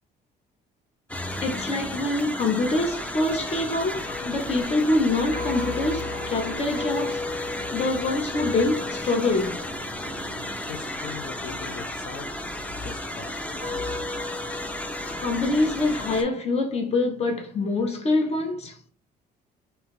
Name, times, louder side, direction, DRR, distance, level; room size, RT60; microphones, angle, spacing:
sound 1, 1.1-16.2, left 1 dB, 10° left, 0.4 m, -33 dB
voice 1, 1.4-7.3 7.7-9.7 15.2-18.8, left 2 dB, 40° left, 0.8 m, -25 dB
sound 2, 4.0-12.2 12.9-16.4, left 3 dB, 85° left, 0.9 m, -37 dB
voice 2, 10.7-12.4 12.7-13.6, left 6 dB, 65° left, 0.5 m, -40 dB
2.8 x 2.3 x 2.9 m
cardioid pair, 110°, 17 cm